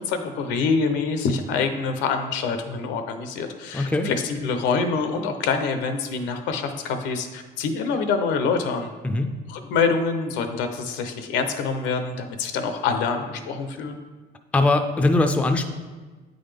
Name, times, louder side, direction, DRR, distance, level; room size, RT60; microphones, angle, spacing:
voice 1, 0.0-8.9 9.5-14.0, left 5 dB, 90° left, 7 dB, 0.7 m, -25 dB
voice 2, 3.7-4.1 9.0-9.3 14.5-15.6, left 2 dB, 5° left, 7 dB, 0.3 m, -20 dB
8.5 x 3.9 x 3.3 m, 1.3 s
cardioid pair, 130°, 18 cm